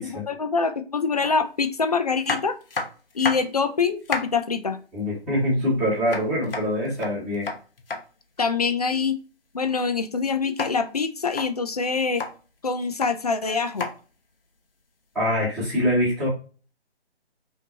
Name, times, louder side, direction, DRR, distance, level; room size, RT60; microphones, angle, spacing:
voice 1, 0.0-2.6 3.1-4.8 8.4-9.2 9.5-12.2 12.6-13.9, left 5 dB, 35° left, 9 dB, 0.5 m, -25 dB
sound 1, 1.2-1.3 2.2-3.6 3.9-4.4 6.1-8.0 10.6-10.7 11.2-11.5 12.0-12.3 12.8-13.1 13.8-13.9 15.2-15.3, left 3 dB, 60° left, 0.9 m, -30 dB
voice 2, 4.9-7.5 15.1-16.3, equal, ahead, -14 dB, 1.3 m, -24 dB
5.7 x 2.8 x 2.7 m, 0.36 s
figure-of-eight pair, 145°, 33 cm